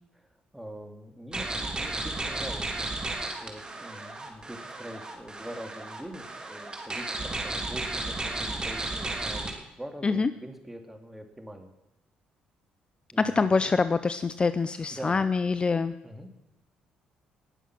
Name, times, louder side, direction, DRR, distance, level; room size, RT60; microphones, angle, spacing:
voice 1, 0.5-2.8 3.4-9.5 9.8-11.7 13.1-13.6 14.9-15.2 16.0-16.4, equal, 5° right, 5 dB, 2.6 m, -43 dB
sound 1, 1.3-9.5, right 2 dB, 25° right, 3.0 m, -34 dB
voice 2, 13.2-15.9, left 4 dB, 30° left, 13 dB, 0.6 m, -25 dB
19.0 x 7.3 x 6.1 m, 0.91 s
supercardioid pair, 60°, 3 cm